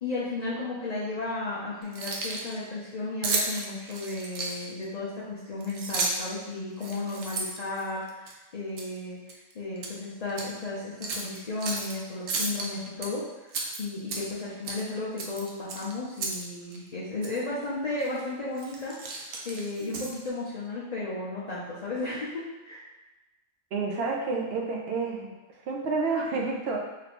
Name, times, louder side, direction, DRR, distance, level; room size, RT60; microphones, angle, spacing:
voice 1, 0.0-9.2 9.5-13.5 13.8-22.8, left 2 dB, 40° left, -8 dB, 0.7 m, -34 dB
Keys jangling, 1.8-2.5 3.2-4.8 5.6-6.3 6.8-8.3 8.8-9.0 9.3-9.9 10.3-10.5 11.0-11.9 12.3-13.1 13.5-14.4 14.7-14.9 15.2-16.4 16.7-16.8 17.2-17.4 18.0-18.2 18.6-20.3, right 3 dB, 90° right, 1.0 m, -33 dB
voice 2, 23.7-25.3 25.7-26.8, right 4 dB, 60° right, 0 dB, 0.8 m, -29 dB
3.2 x 2.8 x 4.2 m, 1.1 s
omnidirectional pair, 1.3 m